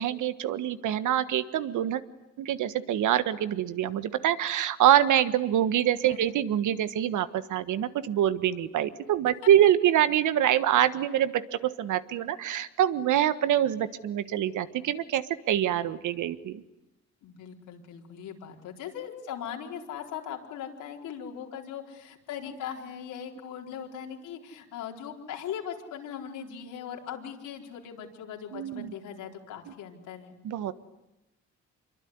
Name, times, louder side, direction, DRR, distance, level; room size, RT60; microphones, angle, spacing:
voice 1, 0.0-2.0 2.4-16.6 28.5-28.9 30.4-30.7, right 11 dB, 80° right, 13 dB, 1.5 m, -25 dB
voice 2, 17.2-30.4, left 8 dB, 90° left, 1 dB, 4.3 m, -39 dB
26.5 x 23.5 x 9.6 m, 0.94 s
cardioid pair, 90°, 30 cm